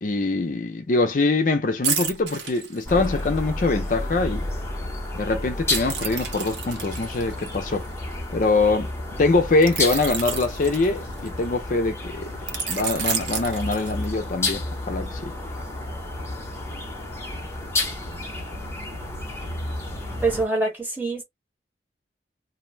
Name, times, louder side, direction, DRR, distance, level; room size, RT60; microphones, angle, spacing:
voice 1, 0.0-4.4 5.1-7.9 8.3-8.9 9.2-12.3 12.7-15.3, left 3 dB, 45° left, 0.5 m, -23 dB
sound 1, 1.8-3.4 5.7-8.4 9.6-11.5 12.5-14.3 14.8-15.0, right 7 dB, 80° right, 0.8 m, -31 dB
sound 2, 2.9-20.5, left 2 dB, 15° left, 0.7 m, -31 dB
voice 2, 20.2-21.2, right 3 dB, 10° right, 1.0 m, -24 dB
2.6 x 2.0 x 3.1 m
head